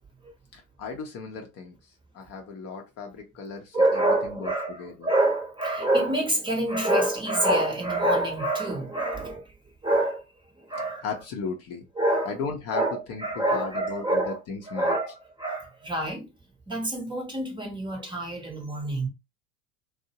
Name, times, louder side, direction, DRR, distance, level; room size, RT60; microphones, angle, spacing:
voice 1, 0.5-1.8 2.1-4.5 4.8-5.1 11.0-11.8 12.2-14.9, left 5 dB, 35° left, 0.6 m, -36 dB
voice 2, 3.7-9.5 9.8-10.2 10.6-11.0 12.0-12.3 12.7-14.4 14.7-16.3 16.7-19.1, right 1 dB, 10° right, 0.8 m, -26 dB
2.5 x 2.0 x 2.8 m
hypercardioid pair, 90°, 42 cm